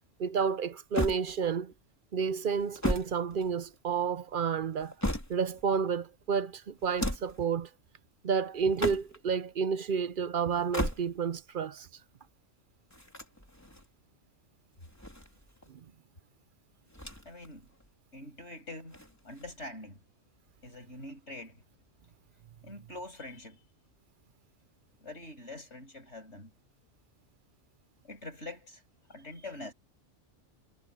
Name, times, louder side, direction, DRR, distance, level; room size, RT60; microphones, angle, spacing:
voice 1, 0.2-1.7 2.1-4.9 5.3-7.7 8.2-11.9 15.7-15.8, right 6 dB, 50° right, 0.7 m, -30 dB
sound 1, 0.9-1.8 2.5-3.9 4.6-5.6 6.8-7.5 8.6-9.3 10.5-11.4 12.9-13.9 14.8-15.7 16.9-17.5 17.8-17.9 18.9-19.7, left 1 dB, 10° left, 3.4 m, -36 dB
voice 2, 17.2-17.7 18.1-20.0 20.6-21.6 22.6-23.6 25.0-26.5 28.0-28.8 29.1-29.7, left 2 dB, 60° left, 6.8 m, -44 dB
omnidirectional pair, 1.3 m